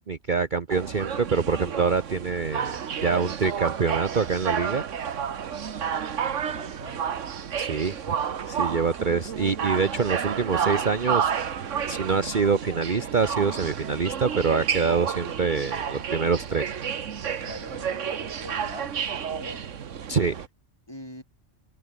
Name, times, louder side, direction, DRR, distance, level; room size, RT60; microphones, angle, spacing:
voice 1, 0.1-4.8 7.6-8.1 8.5-11.3 11.9-16.7 20.1-20.3, right 5 dB, 40° right, 1.2 m, -25 dB
sound 1, 0.7-20.5, right 8 dB, 70° right, 1.5 m, -31 dB
voice 2, 6.5-7.0 17.4-19.6 20.9-21.2, equal, 20° left, 7.6 m, -42 dB
omnidirectional pair, 1.3 m